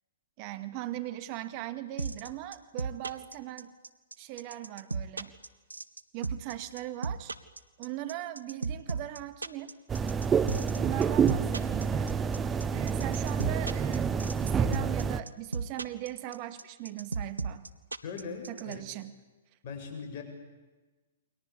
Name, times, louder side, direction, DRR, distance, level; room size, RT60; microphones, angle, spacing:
voice 1, 0.4-3.7 4.2-5.3 6.1-7.3 7.8-9.8 10.7-12.1 12.7-17.7 18.5-19.2, right 14 dB, 40° right, 11 dB, 2.1 m, -39 dB
sound 1, 2.0-18.7, right 4 dB, 90° right, 1.4 m, -34 dB
sound 2, 9.9-15.2, right 6 dB, 20° right, 1.1 m, -28 dB
voice 2, 18.0-18.8 19.6-20.2, left 5 dB, 50° left, 4 dB, 7.8 m, -40 dB
29.5 x 23.5 x 8.7 m, 1.2 s
hypercardioid pair, 120°, 0 cm